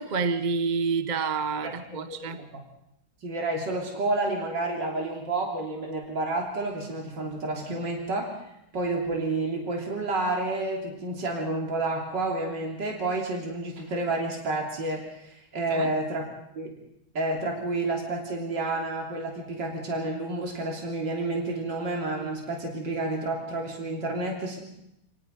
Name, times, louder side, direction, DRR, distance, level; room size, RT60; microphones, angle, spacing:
voice 1, 0.0-2.4 7.7-7.8 15.7-15.9, right 5 dB, 35° right, 0.7 m, -28 dB
voice 2, 1.9-2.5 3.2-8.2 8.7-16.8 17.1-24.6, right 2 dB, 55° right, 3.9 m, -30 dB
28.0 x 18.5 x 5.3 m
omnidirectional pair, 2.2 m